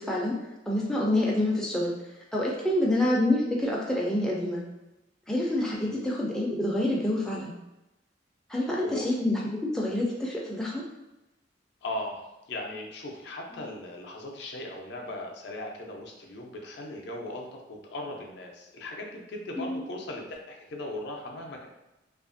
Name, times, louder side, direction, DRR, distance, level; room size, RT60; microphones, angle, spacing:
voice 1, 0.7-1.9 2.3-4.6 5.3-7.5 8.5-9.4 9.7-10.8 19.6-19.9, left 1 dB, 5° left, -4 dB, 0.3 m, -27 dB
voice 2, 8.5-9.0 11.8-21.7, left 1 dB, 65° left, 1 dB, 0.5 m, -38 dB
2.7 x 2.4 x 2.5 m, 0.95 s
head